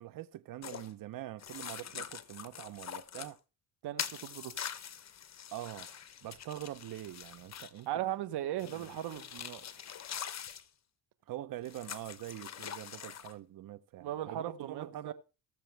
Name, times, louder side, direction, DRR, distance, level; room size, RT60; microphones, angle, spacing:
voice 1, 0.0-3.4 5.5-5.9 6.2-7.9 8.6-8.9 11.3-15.1, right 13 dB, 55° right, 0.7 m, -44 dB
sound 1, 0.6-0.9 1.4-3.3 4.0-7.9 8.6-10.6 11.7-13.3, left 9 dB, 40° left, 1.0 m, -44 dB
voice 2, 3.8-4.5 7.9-9.6 14.0-15.1, right 12 dB, 80° right, 1.5 m, -37 dB
20.0 x 6.9 x 3.4 m
cardioid pair, 95°, 40 cm